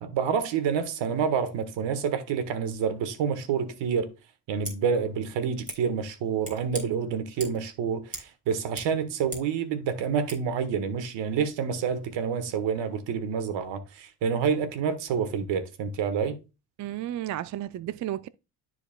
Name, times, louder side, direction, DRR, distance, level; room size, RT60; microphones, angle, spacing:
voice 1, 0.0-4.1 4.5-16.4, right 6 dB, 80° right, 1.6 m, -28 dB
Scissors, 4.5-4.8 5.7-5.8 6.4-6.8 7.4-7.7 8.1-8.3 8.6-9.5 10.3-10.4, right 2 dB, 20° right, 3.7 m, -40 dB
voice 2, 16.8-18.3, right 13 dB, 45° right, 0.4 m, -33 dB
13.0 x 4.6 x 2.3 m
supercardioid pair, 75°, 44 cm